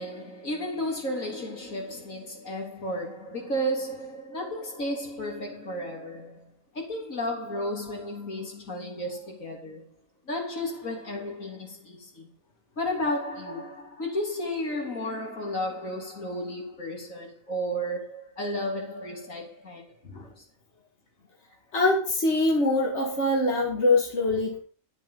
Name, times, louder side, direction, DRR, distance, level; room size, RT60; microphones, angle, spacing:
voice 1, 0.0-9.9 10.3-12.3 12.8-19.9 20.4-20.5, equal, 75° left, 3.7 m, -33 dB
voice 2, 21.7-24.6, left 2 dB, 55° left, 2.7 m, -23 dB
12.0 x 7.6 x 5.7 m
omnidirectional pair, 1.4 m